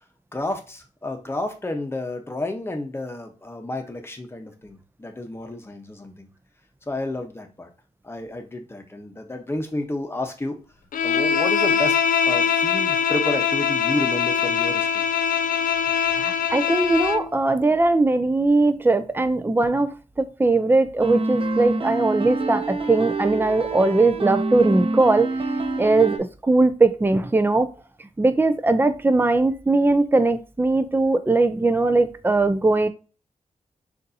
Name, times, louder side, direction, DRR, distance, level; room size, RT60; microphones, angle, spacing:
voice 1, 0.3-6.3 6.9-7.7 8.0-10.6 11.0-12.0 12.3-15.1, left 1 dB, 20° left, 4 dB, 0.9 m, -31 dB
Bowed string instrument, 10.9-17.3, left 7 dB, 85° left, 0.4 m, -22 dB
voice 2, 16.2-25.3 25.8-27.7 28.2-32.9, right 2 dB, 15° right, 10 dB, 0.5 m, -20 dB
sound 1, 21.0-26.2, right 2 dB, 40° right, 0.8 m, -26 dB
6.6 x 2.6 x 2.7 m, 0.34 s
wide cardioid pair, 100°, 14 cm